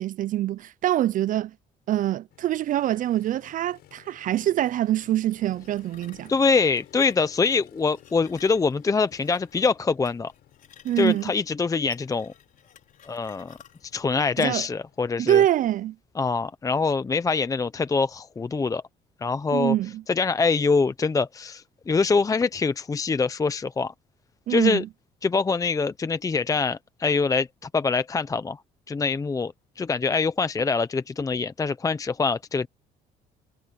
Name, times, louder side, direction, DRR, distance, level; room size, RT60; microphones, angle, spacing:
voice 1, 0.0-1.5 1.9-6.3 10.8-11.3 14.4-14.7 15.2-16.0 19.5-20.0 24.5-24.9, right 12 dB, 50° right, 0.4 m, -24 dB
Motorcycle, 2.3-15.3, left 12 dB, 70° left, 6.4 m, -56 dB
sound 1, 4.7-14.0, left 8 dB, 50° left, 5.0 m, -55 dB
voice 2, 6.3-10.3 11.0-12.3 13.1-13.5 13.9-15.4 16.2-18.8 19.2-19.7 20.1-23.9 24.5-24.8 25.2-27.5 27.7-28.6 28.9-32.7, left 4 dB, 20° left, 0.7 m, -24 dB
cardioid pair, 110°, 17 cm